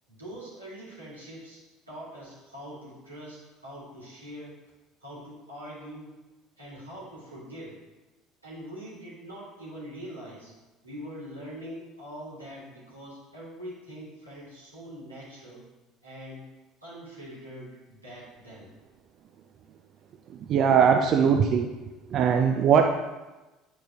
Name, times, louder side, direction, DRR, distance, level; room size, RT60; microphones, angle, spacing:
voice 1, 0.1-4.6 5.0-6.1 6.6-7.8 8.4-10.5 10.8-15.6 16.0-16.4 16.8-18.7, equal, 90° right, -9 dB, 2.2 m, -43 dB
voice 2, 20.5-21.7 22.1-22.9, right 7 dB, 45° right, 4 dB, 0.4 m, -20 dB
9.0 x 4.5 x 2.8 m, 1.1 s
figure-of-eight pair, 60°, 0 cm